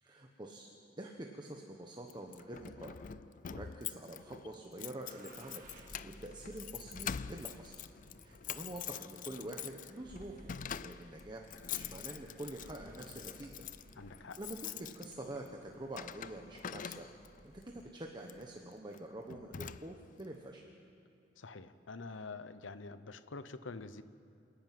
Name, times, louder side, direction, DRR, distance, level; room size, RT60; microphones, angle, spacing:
voice 1, 0.0-0.7 1.0-2.9 3.5-5.7 6.0-7.7 8.2-10.3 10.8-11.5 11.7-13.6 14.2-17.1 17.4-20.6, right 1 dB, 25° right, 1 dB, 1.3 m, -46 dB
Keys jangling, 2.1-17.4 18.2-18.5 18.9-19.0 19.3-20.2, left 8 dB, 45° left, 0.5 m, -45 dB
sound 1, 5.1-17.9, right 1 dB, 45° right, 2.0 m, -58 dB
voice 2, 14.0-14.4 21.4-24.0, left 3 dB, 85° left, 12 dB, 0.8 m, -46 dB
27.5 x 10.0 x 9.4 m, 2.6 s
head